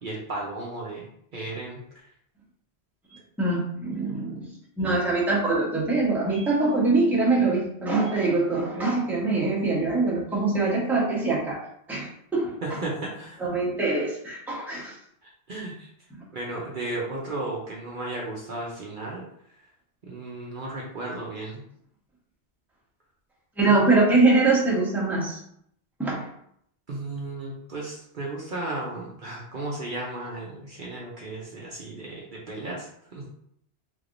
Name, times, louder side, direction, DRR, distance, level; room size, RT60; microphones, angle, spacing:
voice 1, 0.0-1.8 12.6-13.4 15.2-15.9 16.3-19.2 20.0-21.6 23.7-23.8 26.9-33.3, right 2 dB, 50° right, -3 dB, 0.8 m, -34 dB
voice 2, 3.4-4.5 4.8-12.5 13.4-14.9 23.6-25.4 26.0-26.3, right 3 dB, ahead, -5 dB, 0.9 m, -23 dB
3.5 x 3.3 x 2.5 m, 0.69 s
omnidirectional pair, 1.1 m